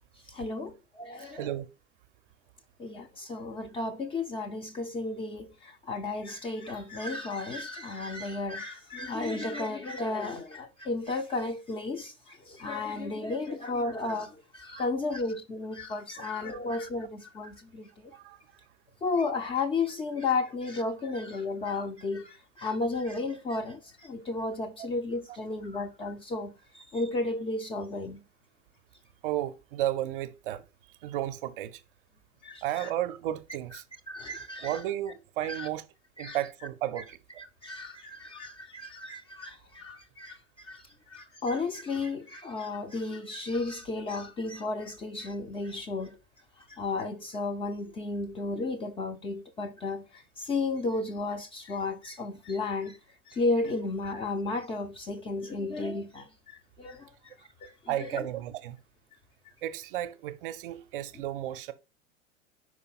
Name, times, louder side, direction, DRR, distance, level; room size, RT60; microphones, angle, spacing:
voice 1, 0.3-1.5 2.8-17.9 19.0-28.2 32.4-32.9 34.1-34.8 35.5-35.7 36.2-36.4 37.4-40.8 41.1-46.2 46.7-53.0 53.3-57.1 57.6-58.3, left 3 dB, 15° left, 0.5 m, -33 dB
voice 2, 1.3-1.7 14.8-14.9 18.1-18.4 29.2-30.7 31.0-31.8 32.6-33.8 34.6-35.9 36.2-37.2 57.9-58.8 59.6-61.7, right 13 dB, 45° right, 0.6 m, -33 dB
5.2 x 4.8 x 4.1 m
figure-of-eight pair, 90°, 37 cm